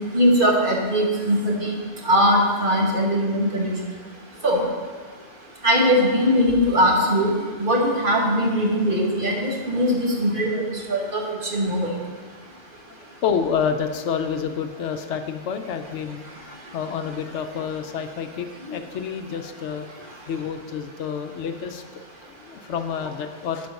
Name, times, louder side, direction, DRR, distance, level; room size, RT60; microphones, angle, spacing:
voice 1, 0.1-1.8 2.0-3.7 4.4-4.6 5.6-7.3 7.6-10.6 10.9-11.9, equal, 45° right, -1 dB, 1.5 m, -20 dB
voice 2, 12.9-19.9 20.3-21.8 22.3-23.7, left 7 dB, 70° left, 7 dB, 0.9 m, -29 dB
11.5 x 5.1 x 5.3 m, 1.5 s
omnidirectional pair, 1.3 m